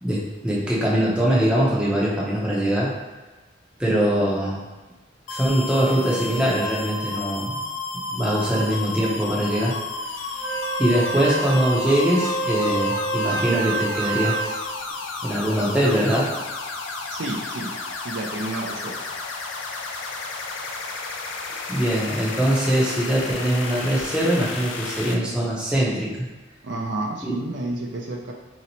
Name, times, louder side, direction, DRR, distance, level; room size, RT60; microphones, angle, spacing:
voice 1, 0.0-2.9 3.8-4.6 5.3-7.6 7.9-9.7 10.8-14.6 15.2-16.3 21.7-26.3 27.2-27.3, right 1 dB, 5° right, -6 dB, 0.6 m, -22 dB
sound 1, 5.3-25.1, left 3 dB, 90° left, 0.4 m, -32 dB
Wind instrument woodwind instrument, 10.3-14.6, right 3 dB, 50° left, 0.9 m, -27 dB
voice 2, 17.1-19.0 26.6-28.3, right 2 dB, 70° right, 0 dB, 0.4 m, -30 dB
2.8 x 2.0 x 4.0 m, 1.2 s
head